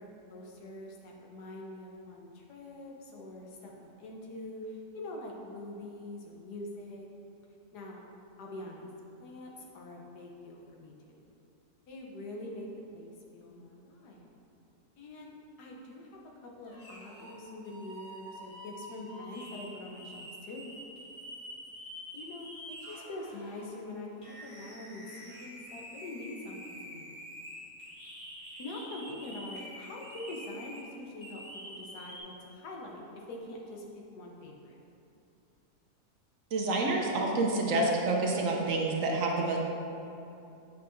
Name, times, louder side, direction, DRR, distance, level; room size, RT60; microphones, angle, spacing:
voice 1, 0.0-7.1 7.7-8.0 8.4-8.9 9.2-11.2 11.9-14.3 15.0-16.1 16.4-20.7 22.1-27.2 28.6-34.8, left 2 dB, 85° left, -1 dB, 1.5 m, -44 dB
sound 1, 16.6-17.4 17.6-23.6 24.2-30.8 31.2-32.2, equal, 40° left, 1.6 m, -47 dB
voice 2, 36.5-39.6, right 2 dB, 65° right, 0 dB, 1.0 m, -28 dB
8.4 x 5.6 x 2.6 m, 2.8 s
omnidirectional pair, 1.7 m